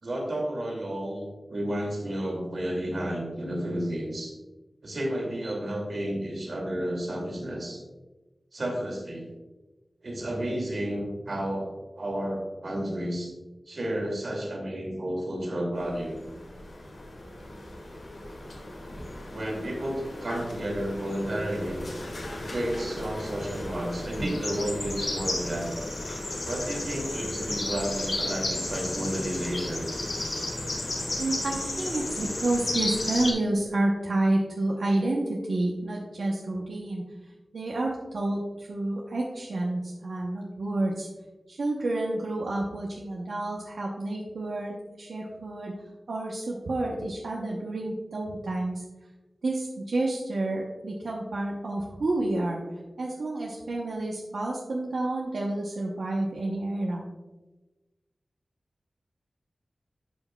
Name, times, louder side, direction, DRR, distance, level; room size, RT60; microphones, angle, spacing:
voice 1, 0.0-4.3 4.8-7.8 8.5-9.3 10.0-13.3 13.7-16.2 19.3-21.9 22.3-25.7 26.5-29.8, right 1 dB, 60° right, -1 dB, 2.5 m, -32 dB
sound 1, 15.9-33.3, left 1 dB, 75° left, 2.1 m, -34 dB
voice 2, 31.2-37.0 37.5-41.1 41.5-45.7 46.1-48.8 49.4-52.6 53.0-57.0, right 2 dB, 90° right, -2 dB, 0.9 m, -29 dB
11.5 x 5.9 x 2.3 m, 1.1 s
wide cardioid pair, 95°, 0 cm